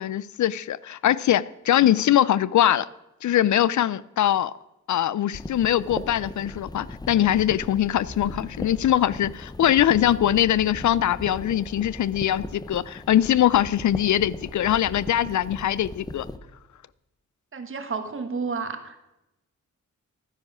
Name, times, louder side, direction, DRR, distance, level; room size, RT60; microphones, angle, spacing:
voice 1, 0.0-2.9 3.2-4.5 4.9-16.3, left 11 dB, 75° left, 0.5 m, -22 dB
sound 1, 5.3-16.4, left 2 dB, 15° left, 0.8 m, -38 dB
voice 2, 17.5-18.9, right 5 dB, 45° right, 1.4 m, -31 dB
13.0 x 9.9 x 6.1 m
wide cardioid pair, 150°, 30 cm